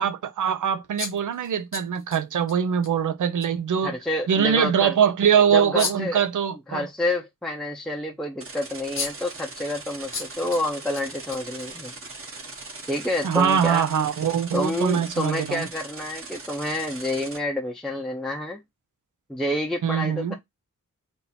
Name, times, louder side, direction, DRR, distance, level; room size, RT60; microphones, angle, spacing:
voice 1, 0.0-3.9 4.3-6.9 13.2-15.7 19.8-20.3, right 8 dB, 70° right, 0.7 m, -23 dB
sound 1, 1.0-2.5 2.8-2.9 3.4-3.5 5.8-6.2 8.5-8.6 9.0-9.4 10.1-10.6 11.0-11.9, left 5 dB, 40° left, 0.9 m, -33 dB
voice 2, 3.8-4.9 5.5-6.2 6.7-11.9 12.9-13.9 14.5-18.6 19.3-20.3, left 1 dB, ahead, 0.7 m, -28 dB
sound 2, 8.4-17.4, right 3 dB, 45° right, 1.3 m, -40 dB
3.6 x 2.7 x 4.2 m
wide cardioid pair, 100°, 32 cm